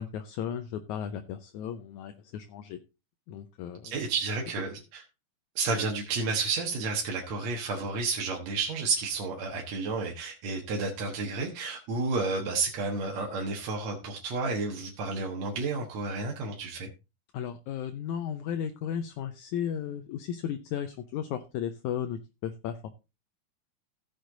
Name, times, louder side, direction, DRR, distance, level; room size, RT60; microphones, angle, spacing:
voice 1, 0.0-2.8 3.3-4.0 17.3-22.9, left 9 dB, 75° left, 9 dB, 2.0 m, -35 dB
voice 2, 3.8-5.0 5.6-16.9, right 3 dB, 60° right, 1 dB, 2.4 m, -31 dB
15.5 x 6.5 x 3.9 m, 0.28 s
omnidirectional pair, 3.8 m